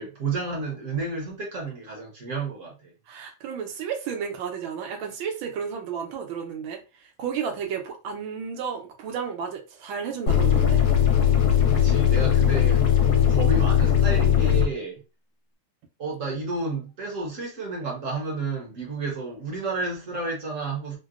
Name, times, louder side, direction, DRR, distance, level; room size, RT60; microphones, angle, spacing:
voice 1, 0.0-2.9 11.7-12.8 13.1-15.0 16.0-21.0, right 3 dB, 50° right, 1.0 m, -31 dB
voice 2, 3.1-10.8, right 7 dB, 80° right, 1.5 m, -32 dB
sound 1, 10.3-14.7, left 9 dB, 70° left, 1.5 m, -19 dB
3.8 x 2.1 x 2.4 m
omnidirectional pair, 2.2 m